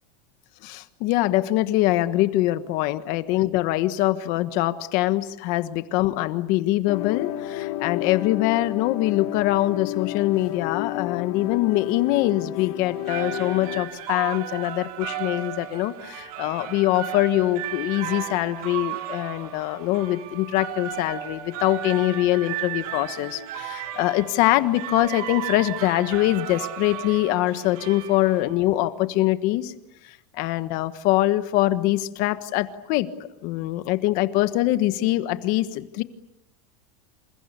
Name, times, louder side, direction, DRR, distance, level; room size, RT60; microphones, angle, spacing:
voice 1, 0.6-29.7 30.4-33.1 33.4-36.0, left 16 dB, 45° left, 11 dB, 1.4 m, -23 dB
sound 1, 6.9-13.8, left 15 dB, 70° left, 3.5 m, -31 dB
sound 2, 12.8-28.7, right 12 dB, 70° right, 3.2 m, -35 dB
28.5 x 27.5 x 6.9 m, 0.87 s
supercardioid pair, 165°, 20 cm